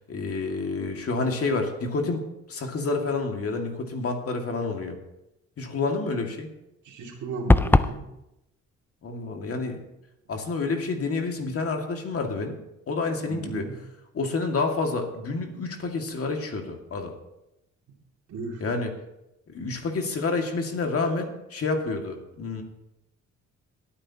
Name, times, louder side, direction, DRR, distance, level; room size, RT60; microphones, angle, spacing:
voice 1, 0.1-5.0 5.6-6.5 9.0-9.8 10.3-12.6 12.9-13.7 14.1-17.2 18.6-18.9 19.5-22.6, left 3 dB, 50° left, 3 dB, 2.1 m, -29 dB
voice 2, 6.8-8.1 13.3-13.7 18.3-18.6, right 3 dB, 70° right, 1 dB, 2.6 m, -35 dB
sound 1, 7.5-8.0, left 2 dB, 5° left, 0.3 m, -17 dB
23.0 x 8.9 x 2.9 m, 0.89 s
cardioid pair, 90°, 30 cm